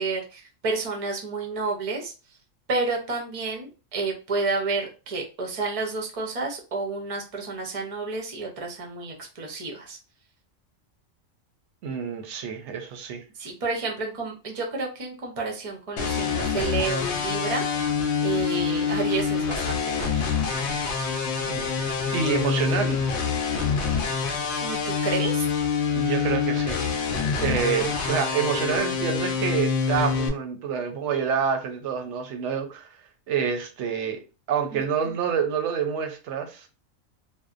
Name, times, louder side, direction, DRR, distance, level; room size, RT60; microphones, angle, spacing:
voice 1, 0.0-2.1 2.7-10.0 13.4-17.6 18.2-20.3 24.6-25.5 34.7-35.2, right 3 dB, 45° right, 0.5 m, -30 dB
voice 2, 11.8-13.2 21.4-21.7 22.1-23.0 25.9-26.8 27.4-32.9 33.3-34.2 34.5-36.7, right 6 dB, 70° right, 0.8 m, -27 dB
sound 1, 16.0-30.3, left 6 dB, 65° left, 0.8 m, -26 dB
2.6 x 2.0 x 2.4 m
omnidirectional pair, 1.4 m